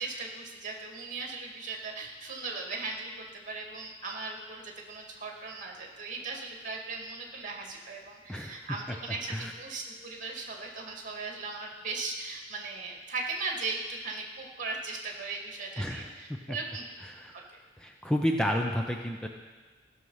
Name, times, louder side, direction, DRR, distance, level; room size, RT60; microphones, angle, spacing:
voice 1, 0.0-16.8 17.3-17.4, right 3 dB, 45° right, 1 dB, 2.0 m, -38 dB
voice 2, 17.8-19.3, equal, 5° left, 2 dB, 0.5 m, -30 dB
15.5 x 6.4 x 5.5 m, 1.3 s
head